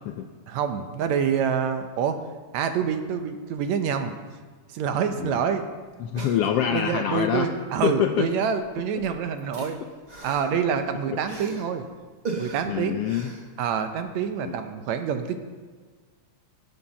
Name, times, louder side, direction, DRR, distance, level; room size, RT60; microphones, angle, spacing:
voice 1, 0.5-2.3 2.5-4.2 4.7-5.7 6.7-9.8 10.2-11.9 12.4-13.0 13.6-15.4, right 7 dB, 75° right, 8 dB, 2.1 m, -26 dB
sound 1, 5.5-5.6 5.9-7.0 8.0-8.3 8.6-11.8 12.2-14.1 14.5-14.6, right 3 dB, 30° right, 0.7 m, -39 dB
voice 2, 6.0-7.5 7.8-8.3 12.7-13.3 14.4-14.6, left 9 dB, 80° left, 5 dB, 1.4 m, -25 dB
18.5 x 7.1 x 5.8 m, 1.5 s
omnidirectional pair, 3.4 m